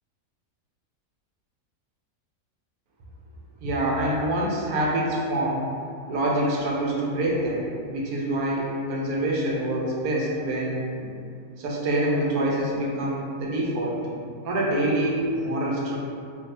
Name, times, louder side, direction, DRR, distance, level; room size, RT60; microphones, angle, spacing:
voice 1, 3.6-5.7 6.1-10.9 11.6-14.0 14.4-16.0, right 1 dB, 90° right, -4 dB, 1.2 m, -26 dB
2.9 x 2.6 x 3.2 m, 2.4 s
omnidirectional pair, 1.5 m